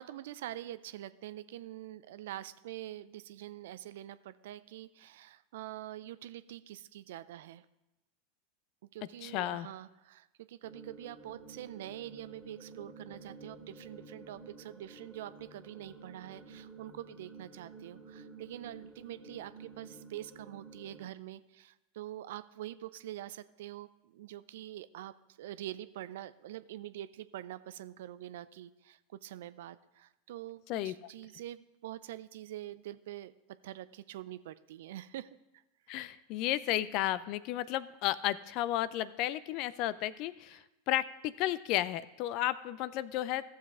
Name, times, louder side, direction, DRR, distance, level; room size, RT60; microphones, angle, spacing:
voice 1, 0.0-7.7 8.9-33.3 33.6-35.6 40.5-40.7, right 13 dB, 65° right, 15 dB, 0.4 m, -45 dB
voice 2, 9.2-9.7 30.7-30.9 35.9-40.6 40.9-43.4, left 14 dB, 50° left, 17 dB, 0.4 m, -33 dB
sound 1, 10.6-21.1, right 3 dB, ahead, 2.3 m, -52 dB
15.0 x 7.2 x 3.6 m, 0.96 s
hypercardioid pair, 90°, 0 cm